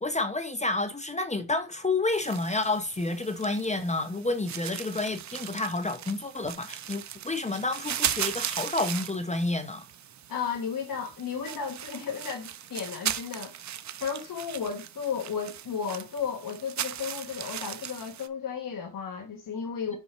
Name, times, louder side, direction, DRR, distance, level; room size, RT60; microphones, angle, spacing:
voice 1, 0.0-9.8, left 2 dB, 15° left, 0.7 m, -29 dB
sound 1, 2.1-18.3, right 10 dB, 45° right, 0.5 m, -37 dB
voice 2, 10.3-13.5 14.0-20.0, left 6 dB, 50° left, 1.3 m, -34 dB
5.7 x 5.4 x 4.4 m
wide cardioid pair, 155°, 43 cm